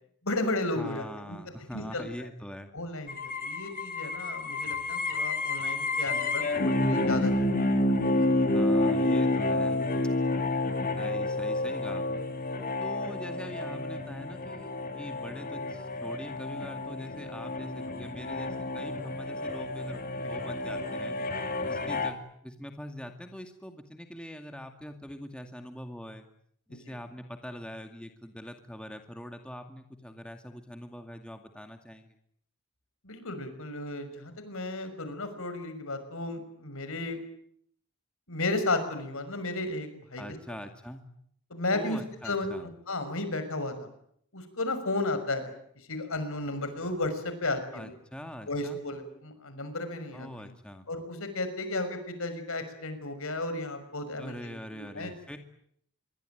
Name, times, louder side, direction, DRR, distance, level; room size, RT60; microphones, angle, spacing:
voice 1, 0.2-1.4 1.7-2.1 2.7-3.2 3.4-7.5 8.3-8.4 10.9-11.1 26.7-27.0 33.0-37.2 38.3-40.2 41.5-42.5 42.9-43.9 44.3-45.5 45.9-47.9 48.5-50.3 50.9-55.1, left 2 dB, 65° left, 10 dB, 6.1 m, -33 dB
voice 2, 0.8-2.7 8.5-9.8 11.0-12.3 12.8-21.2 21.7-26.3 26.7-32.1 40.2-41.1 41.7-42.7 47.7-48.8 50.1-50.9 54.2-55.4, equal, 5° left, 5 dB, 2.2 m, -43 dB
sound 1, 3.1-22.1, left 2 dB, 40° left, 3.1 m, -29 dB
26.5 x 23.5 x 9.3 m, 0.68 s
head